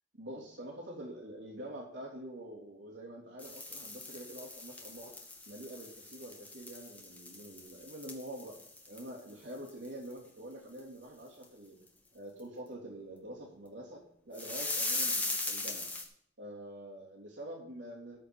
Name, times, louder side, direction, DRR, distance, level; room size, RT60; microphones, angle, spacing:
voice 1, 0.1-5.1 5.5-8.6 8.9-11.8 12.1-15.8 16.4-18.2, right 1 dB, 85° right, -4 dB, 3.3 m, -46 dB
sound 1, 3.4-9.3 9.7-9.9 10.1-10.2 10.8-10.9 11.4-11.5 14.3-16.0, left 2 dB, 10° left, 1.7 m, -39 dB
13.5 x 5.1 x 7.3 m, 0.68 s
head